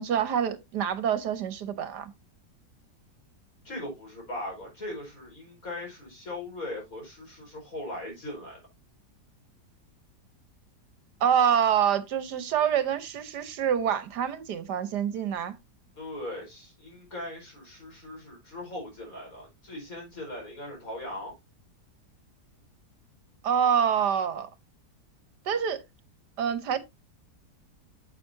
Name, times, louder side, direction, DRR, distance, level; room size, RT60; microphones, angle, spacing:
voice 1, 0.0-2.1 11.2-15.5 23.4-24.5 25.5-25.8 26.4-26.8, right 8 dB, 75° right, 1.6 m, -26 dB
voice 2, 3.6-8.6 16.0-21.3, left 1 dB, 55° left, 5.4 m, -39 dB
9.3 x 7.8 x 2.7 m
omnidirectional pair, 1.8 m